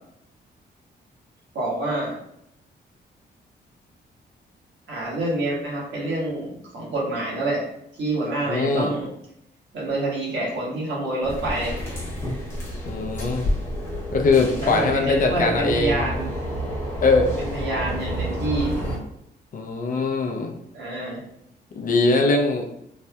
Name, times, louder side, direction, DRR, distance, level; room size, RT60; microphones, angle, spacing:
voice 1, 1.5-2.1 4.9-7.6 8.0-9.1 9.7-11.8 14.6-16.3 17.4-18.8 20.7-21.2, right 2 dB, 75° right, -5 dB, 1.4 m, -27 dB
voice 2, 8.4-8.9 12.9-13.5 14.1-16.0 17.0-17.3 19.5-20.5 21.8-22.6, left 3 dB, 50° left, 2 dB, 0.5 m, -21 dB
sound 1, 11.2-19.0, equal, 15° left, 1.0 m, -29 dB
3.2 x 2.7 x 2.2 m, 0.76 s
wide cardioid pair, 145°, 18 cm